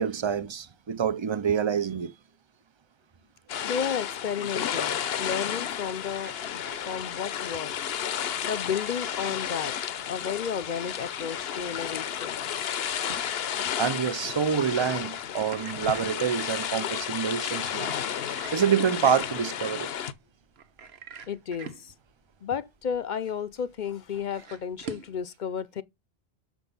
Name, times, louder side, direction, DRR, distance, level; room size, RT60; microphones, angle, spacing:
voice 1, 0.0-2.1 4.9-5.2 13.8-18.0 18.5-19.9, right 7 dB, 35° right, 0.5 m, -27 dB
sound 1, 3.5-20.1, left 9 dB, 75° left, 1.0 m, -32 dB
voice 2, 3.6-7.8 8.4-9.8 10.1-12.4 21.3-21.9 22.4-25.8, left 7 dB, 55° left, 0.7 m, -33 dB
sound 2, 5.8-25.2, right 6 dB, 80° right, 1.3 m, -48 dB
6.7 x 6.1 x 5.3 m
omnidirectional pair, 1.0 m